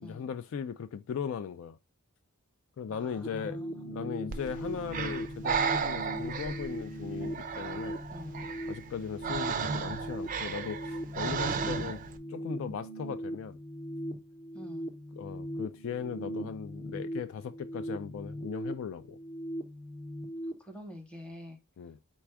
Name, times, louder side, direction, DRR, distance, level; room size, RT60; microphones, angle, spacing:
voice 1, 0.0-1.8 2.8-8.0 8.7-12.0 12.3-13.6 15.1-19.2 21.8-22.0, left 7 dB, 65° left, 0.3 m, -38 dB
voice 2, 2.9-4.0 8.1-8.5 14.5-14.9 20.6-21.6, left 1 dB, 5° left, 0.9 m, -47 dB
sound 1, 3.2-20.5, equal, 35° left, 0.7 m, -39 dB
Breathing, 4.3-12.2, right 6 dB, 40° right, 0.4 m, -35 dB
4.2 x 2.3 x 4.5 m
head